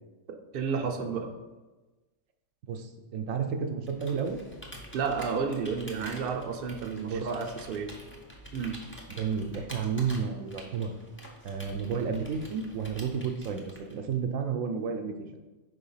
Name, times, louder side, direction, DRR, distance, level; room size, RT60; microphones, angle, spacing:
voice 1, 0.5-1.3 4.9-7.9 8.5-8.7, right 5 dB, 55° right, 4 dB, 0.7 m, -31 dB
voice 2, 2.7-4.4 7.1-7.3 9.2-10.9 11.4-15.4, right 6 dB, 80° right, 5 dB, 1.0 m, -31 dB
Computer keyboard, 3.8-14.1, equal, 10° left, 0.6 m, -47 dB
4.9 x 3.8 x 5.5 m, 1.2 s
omnidirectional pair, 1.4 m